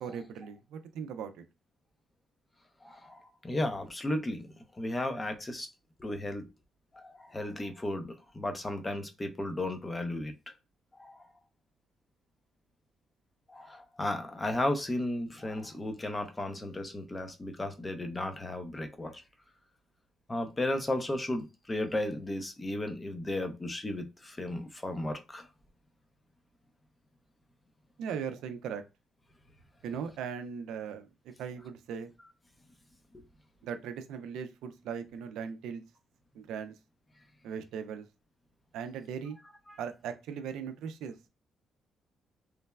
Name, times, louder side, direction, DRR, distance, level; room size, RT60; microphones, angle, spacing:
voice 1, 0.0-1.3 28.0-28.8 29.8-31.1 31.4-32.1 33.6-35.8 36.3-36.7 37.4-38.1 38.7-39.4 39.8-41.1, right 7 dB, 85° right, 0.4 m, -38 dB
voice 2, 2.8-4.5 4.8-5.7 6.0-6.5 6.9-10.3 11.0-11.2 13.5-19.1 20.3-25.4 39.7-39.8, left 1 dB, 20° left, 0.6 m, -34 dB
3.2 x 2.0 x 2.2 m
cardioid pair, 90°, 0 cm